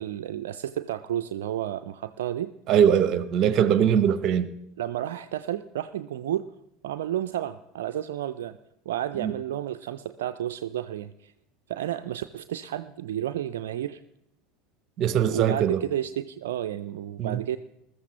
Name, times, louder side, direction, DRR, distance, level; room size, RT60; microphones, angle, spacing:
voice 1, 0.0-2.5 4.8-6.5 6.8-8.6 8.9-11.3 11.7-14.0 15.2-17.6, right 11 dB, 65° right, 0.4 m, -31 dB
voice 2, 2.7-4.5 9.2-9.3 15.0-15.8 17.2-17.4, right 8 dB, 45° right, 0.7 m, -22 dB
20.5 x 13.5 x 3.0 m
figure-of-eight pair, 75°, 0 cm